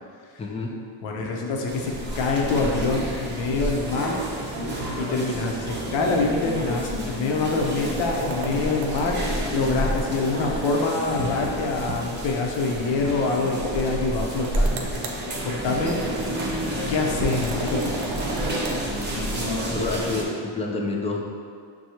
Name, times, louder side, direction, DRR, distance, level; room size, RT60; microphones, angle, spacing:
voice 1, 0.4-0.8 19.7-21.2, left 3 dB, 15° left, -1 dB, 0.3 m, -28 dB
voice 2, 1.0-4.2 5.0-14.7 15.4-16.0 16.9-18.0, left 3 dB, 75° left, 0 dB, 0.8 m, -25 dB
sound 1, 1.7-20.2, right 1 dB, 25° right, 0.7 m, -29 dB
sound 2, 8.3-9.3 11.2-11.6 11.9-12.0 12.3-12.4 14.4-15.2 17.3-18.8, right 4 dB, 90° right, 0.7 m, -35 dB
6.2 x 2.3 x 2.9 m, 2.2 s
cardioid pair, 115°, 45 cm